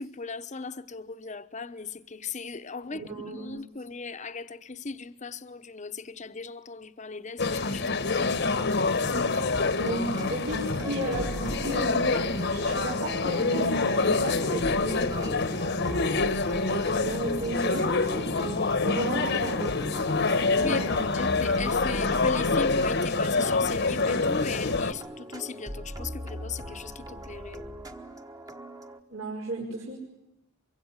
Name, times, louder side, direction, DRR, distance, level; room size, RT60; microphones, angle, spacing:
voice 1, 0.0-8.6 20.3-27.6, left 4 dB, 35° left, 0.9 m, -38 dB
voice 2, 2.9-3.5 9.8-16.3 16.7-19.8 20.5-21.3 29.1-30.0, right 1 dB, 80° right, 5.4 m, -34 dB
sound 1, 7.4-24.9, left 3 dB, 55° left, 1.2 m, -26 dB
sound 2, 9.3-29.0, right 1 dB, 20° right, 1.2 m, -40 dB
24.0 x 23.5 x 9.7 m
head